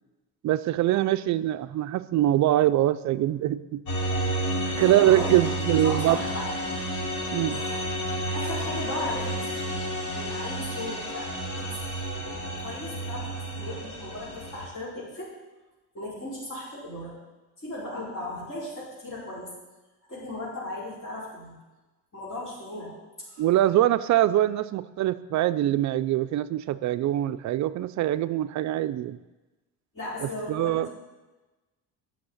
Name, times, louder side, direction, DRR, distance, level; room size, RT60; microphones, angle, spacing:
voice 1, 0.4-3.8 4.4-4.5 4.8-6.2 7.3-7.6 23.4-29.2 30.2-30.9, right 13 dB, 50° right, 13 dB, 0.4 m, -23 dB
sound 1, 3.9-14.7, right 1 dB, 50° left, 2.7 m, -31 dB
voice 2, 4.7-6.9 7.4-7.9 8.3-9.8 10.1-13.3 13.5-15.3 15.9-17.1 17.6-19.5 20.1-21.5 22.1-22.9 23.3-23.4 29.9-31.0, left 1 dB, 35° left, -9 dB, 4.9 m, -37 dB
10.5 x 6.4 x 8.5 m, 1.1 s
cardioid pair, 145°, 38 cm